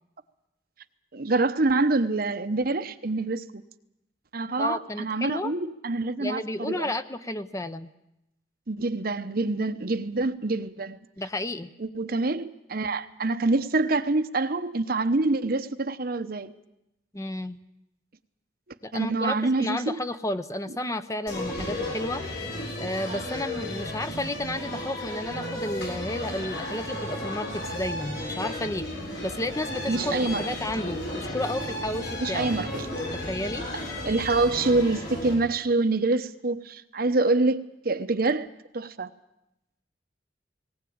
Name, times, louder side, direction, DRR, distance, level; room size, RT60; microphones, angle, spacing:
voice 1, 1.1-3.6 4.3-6.9 8.7-11.0 11.8-16.5 18.9-20.0 29.9-30.5 32.2-32.9 34.0-38.5 38.7-39.1, right 3 dB, 55° right, 1.0 m, -26 dB
voice 2, 4.6-5.5 6.2-7.9 11.2-11.7 17.1-17.6 18.8-22.2 22.8-28.8 29.2-32.5 33.1-33.7, left 1 dB, 20° left, 0.8 m, -32 dB
sound 1, 21.3-35.3, left 1 dB, 75° left, 7.8 m, -34 dB
19.0 x 19.0 x 8.7 m
head